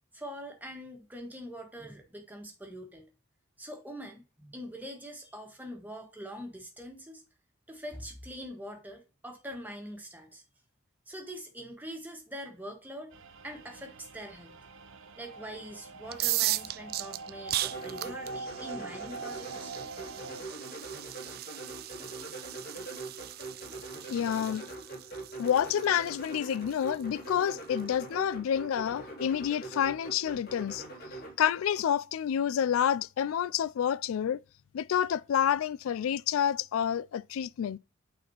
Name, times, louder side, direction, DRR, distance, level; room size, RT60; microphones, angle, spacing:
voice 1, 0.1-3.1 3.6-7.2 7.7-10.4 11.1-13.2 13.4-14.6 15.2-19.7, equal, 10° right, 1.5 m, -43 dB
sound 1, 13.1-20.4, right 4 dB, 70° right, 0.7 m, -44 dB
sound 2, 16.1-27.8, right 15 dB, 50° right, 0.3 m, -37 dB
sound 3, 17.6-31.3, right 2 dB, 50° left, 3.0 m, -43 dB
voice 2, 24.1-24.7 25.4-30.8 31.4-34.4 34.7-37.8, left 9 dB, 75° left, 0.3 m, -28 dB
8.4 x 4.1 x 3.0 m
head